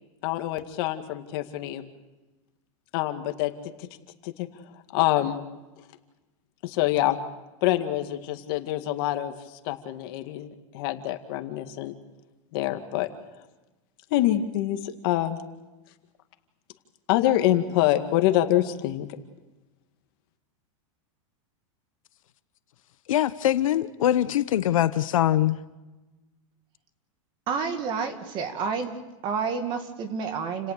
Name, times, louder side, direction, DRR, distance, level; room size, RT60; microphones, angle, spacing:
voice 1, 0.2-1.8 2.9-3.5 3.8-3.9 4.2-4.5 4.9-5.4 6.6-7.2 7.6-9.3 9.6-10.5 10.7-11.9 12.5-13.1 14.1-15.4 17.1-19.1, left 14 dB, 45° left, 7 dB, 2.0 m, -25 dB
voice 2, 23.1-25.6, left 12 dB, 85° left, 13 dB, 1.1 m, -23 dB
voice 3, 27.5-29.0 29.2-30.7, right 5 dB, 30° right, 7 dB, 2.2 m, -29 dB
29.5 x 18.0 x 6.8 m, 1.1 s
supercardioid pair, 165°, 17 cm